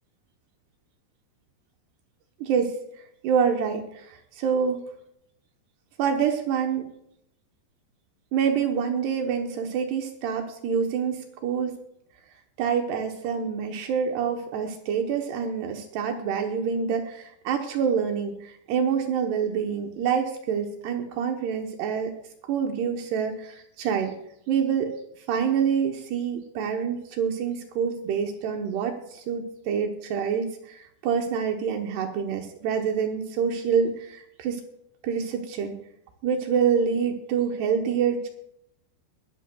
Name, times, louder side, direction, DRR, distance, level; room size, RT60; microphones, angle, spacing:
voice 1, 2.4-2.8 3.2-4.8 6.0-6.9 8.3-11.8 12.6-22.1 22.5-24.1 24.5-24.9 25.3-34.6 35.0-35.8 36.2-38.3, right 7 dB, 75° right, 4 dB, 2.8 m, -26 dB
20.5 x 12.5 x 2.3 m, 0.74 s
omnidirectional pair, 5.3 m